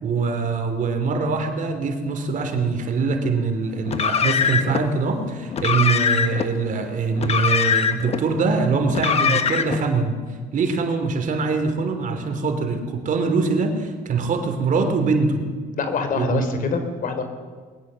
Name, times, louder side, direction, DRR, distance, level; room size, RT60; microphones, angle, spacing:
voice 1, 0.0-10.2 10.5-15.4 16.2-16.6, right 4 dB, 50° right, 6 dB, 3.1 m, -23 dB
Car, 3.9-4.8 5.5-6.5 7.2-8.2 8.9-9.8, left 6 dB, 40° left, 1.5 m, -22 dB
voice 2, 15.8-17.2, left 5 dB, 55° left, 7 dB, 3.6 m, -25 dB
21.0 x 19.0 x 7.6 m, 1.5 s
cardioid pair, 110°, 17 cm